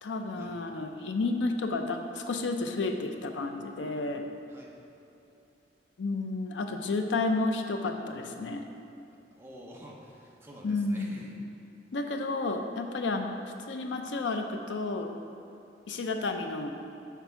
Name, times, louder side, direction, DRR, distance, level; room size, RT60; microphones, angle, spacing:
voice 1, 0.0-4.3 6.0-8.7 10.6-11.4 11.9-13.4 13.7-15.1 15.9-16.8, left 3 dB, 85° left, 5 dB, 0.5 m, -31 dB
voice 2, 9.3-11.4, equal, 15° right, -3 dB, 0.6 m, -49 dB
5.9 x 3.5 x 5.6 m, 2.8 s
head